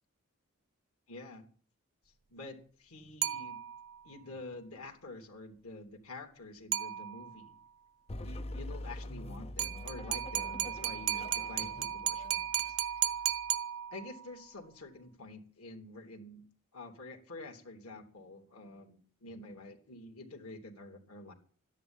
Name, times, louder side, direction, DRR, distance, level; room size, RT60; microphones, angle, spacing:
voice 1, 1.1-1.5 2.0-3.6 4.0-7.6 8.1-12.9 13.9-16.4 16.7-21.3, left 2 dB, 85° left, 2 dB, 3.3 m, -48 dB
sound 1, 3.2-4.0 6.7-7.5 9.6-14.3, right 11 dB, 75° right, 0.9 m, -35 dB
sound 2, 8.1-13.6, left 1 dB, 30° left, 0.7 m, -45 dB
13.0 x 11.0 x 9.0 m, 0.43 s
head